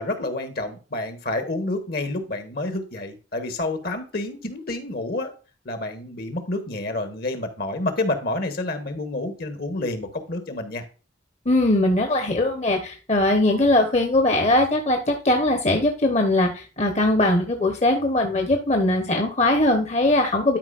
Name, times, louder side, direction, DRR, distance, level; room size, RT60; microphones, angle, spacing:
voice 1, 0.0-5.3 5.6-10.8, left 2 dB, 55° left, 8 dB, 1.4 m, -29 dB
voice 2, 11.4-20.6, left 1 dB, 35° left, 4 dB, 1.0 m, -20 dB
12.0 x 5.1 x 2.5 m, 0.36 s
head